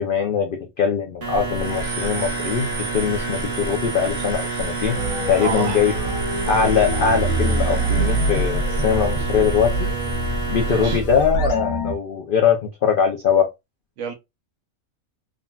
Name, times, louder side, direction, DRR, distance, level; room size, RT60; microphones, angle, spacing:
voice 1, 0.0-5.0 5.3-5.9 6.5-9.9 10.5-13.5, left 7 dB, 75° left, 0.5 m, -21 dB
sound 1, 1.2-11.0, right 3 dB, 45° right, 1.2 m, -28 dB
sound 2, 4.9-11.9, right 1 dB, 90° left, 1.4 m, -25 dB
voice 2, 5.4-5.8 10.6-11.0 14.0-14.1, right 6 dB, 65° right, 0.9 m, -28 dB
3.7 x 2.2 x 2.3 m
omnidirectional pair, 1.5 m